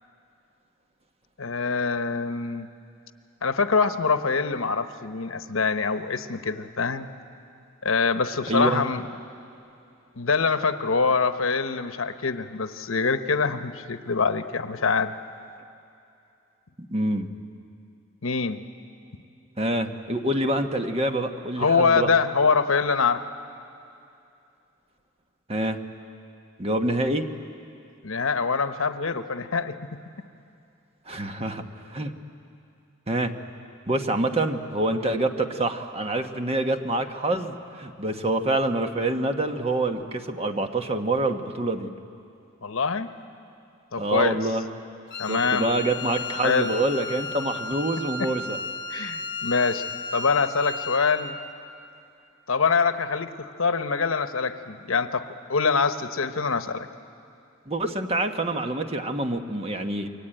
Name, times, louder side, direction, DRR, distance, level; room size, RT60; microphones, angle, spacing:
voice 1, 1.4-2.7 3.4-7.1 7.8-9.0 10.1-15.1 18.2-18.6 21.6-23.2 28.0-29.7 42.6-43.1 43.9-44.4 45.2-45.7 46.4-46.7 48.2-48.3 48.9-49.8 50.1-51.4 52.5-55.2 55.5-56.9, left 5 dB, 80° left, 9 dB, 1.0 m, -24 dB
voice 2, 8.5-8.8 16.9-17.3 19.6-22.1 25.5-25.8 26.6-27.2 31.1-32.1 33.1-33.4 33.9-41.9 44.0-44.6 45.3-48.6 57.7-60.1, right 2 dB, 30° right, 6 dB, 1.3 m, -26 dB
Wind instrument woodwind instrument, 45.1-51.4, left 3 dB, 55° left, 1.4 m, -34 dB
28.5 x 23.0 x 9.0 m, 2.6 s
head